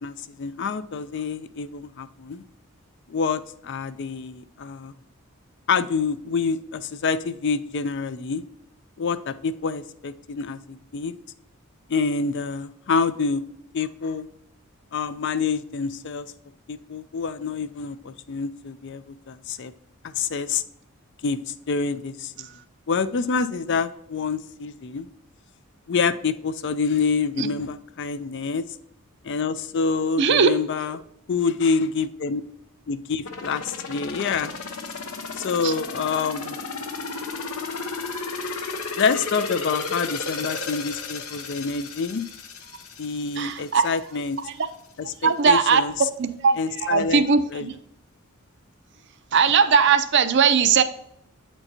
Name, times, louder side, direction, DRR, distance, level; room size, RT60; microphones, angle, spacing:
voice 1, 0.0-2.4 3.1-4.9 5.7-8.4 9.0-11.1 11.9-13.4 13.7-14.3 14.9-16.3 16.7-19.7 20.0-20.6 21.2-22.5 22.9-25.1 25.9-28.6 29.2-31.0 31.3-32.4 32.9-34.5 35.4-36.6 39.0-42.2 43.0-44.4 45.0-46.1 46.6-47.3 47.5-47.7, left 5 dB, 55° left, 13 dB, 0.4 m, -27 dB
voice 2, 30.2-30.5 35.6-35.7 43.4-43.9 44.4-44.6 45.2-45.8 46.2-47.7 49.3-50.8, right 6 dB, 55° right, 11 dB, 0.5 m, -19 dB
sound 1, 33.2-44.0 44.4-44.5, left 4 dB, 80° left, 0.9 m, -33 dB
8.7 x 4.5 x 2.7 m, 0.75 s
head